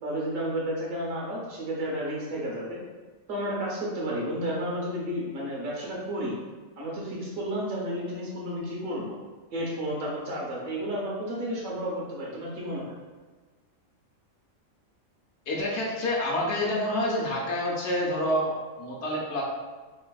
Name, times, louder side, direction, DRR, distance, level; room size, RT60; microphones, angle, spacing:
voice 1, 0.0-2.8 3.3-6.4 6.8-9.2 9.5-12.9, equal, 85° right, -4 dB, 1.3 m, -32 dB
voice 2, 15.5-19.4, left 1 dB, 65° left, -3 dB, 0.9 m, -28 dB
3.3 x 3.2 x 2.2 m, 1.3 s
omnidirectional pair, 1.4 m